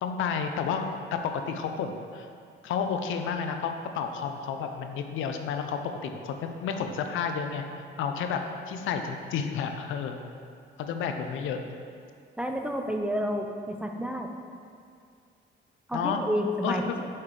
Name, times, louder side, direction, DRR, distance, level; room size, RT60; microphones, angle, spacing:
voice 1, 0.0-2.3 2.6-7.6 8.0-8.4 8.7-10.2 10.8-11.6 15.9-16.2 16.6-17.0, left 6 dB, 80° left, 6 dB, 0.5 m, -31 dB
voice 2, 12.4-14.3 15.9-17.1, equal, 5° right, 3 dB, 0.5 m, -30 dB
6.4 x 5.6 x 3.3 m, 2.3 s
cardioid pair, 90°, 20 cm